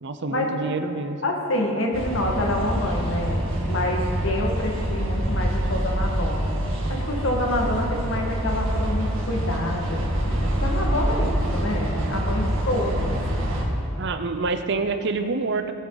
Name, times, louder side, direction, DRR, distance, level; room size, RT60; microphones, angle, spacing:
voice 1, 0.0-1.2 14.0-15.7, right 3 dB, 60° right, 8 dB, 0.7 m, -27 dB
voice 2, 1.2-6.6 6.9-13.1, left 1 dB, 70° left, 0 dB, 1.8 m, -27 dB
sound 1, 1.9-13.6, equal, 75° right, 2.0 m, -26 dB
17.5 x 8.6 x 4.1 m, 2.7 s
head